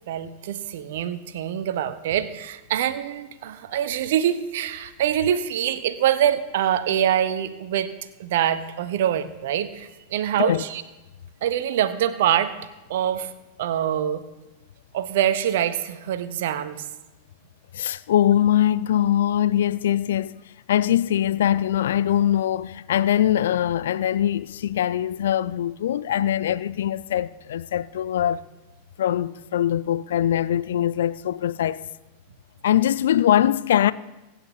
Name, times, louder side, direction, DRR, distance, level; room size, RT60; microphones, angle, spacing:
voice 1, 0.1-7.9 8.2-10.8 11.4-12.5 12.9-13.3 13.6-14.2 14.9-16.8, right 10 dB, 55° right, 0.9 m, -24 dB
voice 2, 17.7-20.4 20.7-28.4 29.0-31.8 32.6-33.9, left 11 dB, 60° left, 0.4 m, -22 dB
24.5 x 9.1 x 3.1 m
figure-of-eight pair, 90°, 0 cm